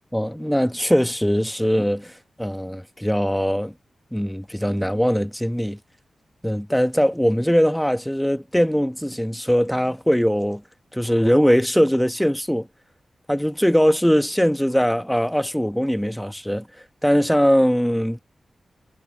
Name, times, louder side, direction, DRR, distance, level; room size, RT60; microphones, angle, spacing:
voice 1, 0.1-3.7 4.1-5.8 6.4-10.6 10.9-12.7 13.3-16.7 17.0-18.2, equal, 5° left, 1.3 m, -21 dB
cardioid pair, 45°, 0 cm